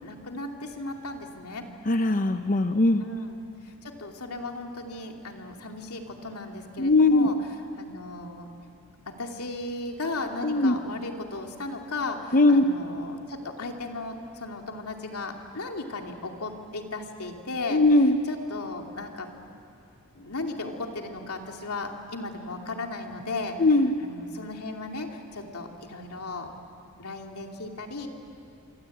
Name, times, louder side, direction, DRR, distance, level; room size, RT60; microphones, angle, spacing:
voice 1, 0.0-1.6 3.0-7.4 7.8-8.5 9.1-17.8 18.3-19.3 20.1-23.6 24.0-26.5 27.0-28.1, left 2 dB, 85° left, 2 dB, 2.7 m, -36 dB
voice 2, 1.9-3.0 6.8-7.3 10.4-10.7 12.3-12.6 17.7-18.1 23.6-23.9, left 2 dB, 35° left, 8 dB, 0.8 m, -20 dB
27.5 x 24.5 x 8.6 m, 2.7 s
head